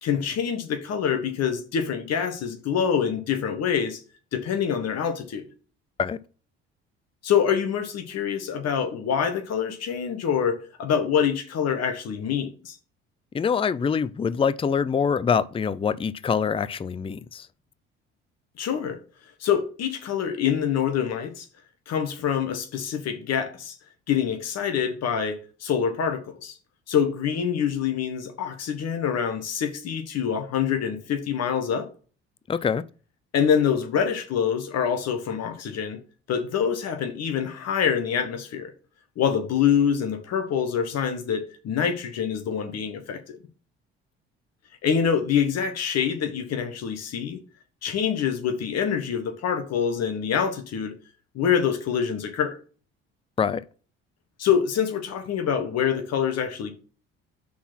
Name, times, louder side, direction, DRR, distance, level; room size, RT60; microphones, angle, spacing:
voice 1, 0.0-4.0 4.3-5.4 7.2-12.8 18.6-19.0 19.4-21.5 21.9-23.7 24.1-26.6 26.9-31.9 33.3-36.0 36.3-38.7 39.2-43.4 44.8-47.4 47.8-50.9 51.3-52.6 54.4-56.7, left 7 dB, 60° left, 1.3 m, -25 dB
voice 2, 13.3-17.5 32.5-32.8 53.4-53.6, left 6 dB, 20° left, 0.5 m, -24 dB
5.9 x 4.0 x 5.9 m
hypercardioid pair, 65°, 30 cm